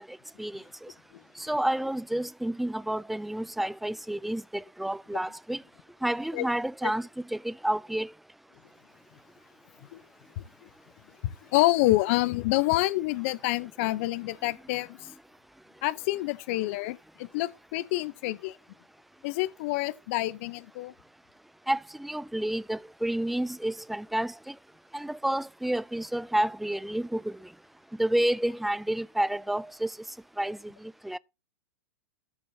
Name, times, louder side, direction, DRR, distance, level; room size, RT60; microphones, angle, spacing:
voice 1, 1.4-5.6 6.0-8.1 21.7-24.5 24.9-27.3 28.0-29.9 30.4-30.6 31.0-31.2, right 1 dB, ahead, 0.4 m, -29 dB
voice 2, 10.4-10.7 11.5-15.1 15.8-18.6 19.2-20.9, left 18 dB, 55° left, 0.8 m, -28 dB
13.0 x 7.0 x 2.8 m
hypercardioid pair, 115°, 8 cm